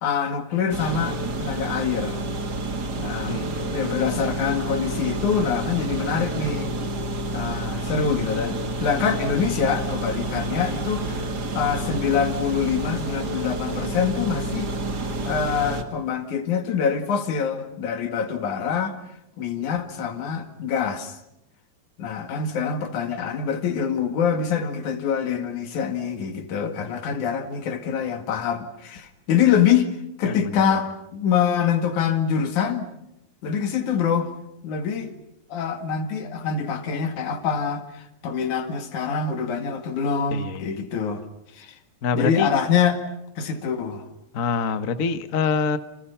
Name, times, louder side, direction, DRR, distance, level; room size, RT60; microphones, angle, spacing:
voice 1, 0.0-2.2 3.0-3.4 3.7-6.7 7.3-11.3 11.5-14.7 15.3-19.0 19.4-21.2 22.0-29.9 30.2-32.9 33.4-34.3 34.6-35.1 35.5-41.2 41.5-41.8 42.1-43.0 43.4-44.1, left 7 dB, 80° left, 7 dB, 3.5 m, -25 dB
sound 1, 0.7-15.8, right 2 dB, 40° right, 2.1 m, -29 dB
voice 2, 3.3-3.9 30.3-30.6 40.3-40.8 42.0-42.5 44.3-45.8, left 5 dB, 50° left, 10 dB, 0.9 m, -26 dB
30.0 x 27.0 x 5.7 m, 0.87 s
omnidirectional pair, 3.4 m